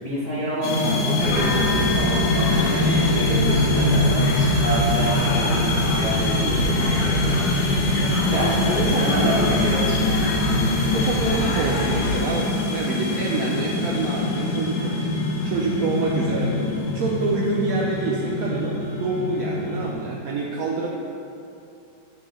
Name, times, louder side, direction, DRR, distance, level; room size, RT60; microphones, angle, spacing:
voice 1, 0.0-4.3 4.6-7.9 8.3-10.0, right 1 dB, 25° left, -10 dB, 0.9 m, -27 dB
sound 1, 0.6-19.9, left 2 dB, 80° left, 1.5 m, -24 dB
sound 2, 1.2-12.2, left 1 dB, 60° left, 0.7 m, -27 dB
sound 3, 1.3-8.8, equal, 40° right, 1.7 m, -33 dB
voice 2, 8.8-9.3 10.9-20.9, right 3 dB, 75° right, -3 dB, 0.8 m, -27 dB
9.2 x 3.1 x 3.8 m, 2.7 s
omnidirectional pair, 2.1 m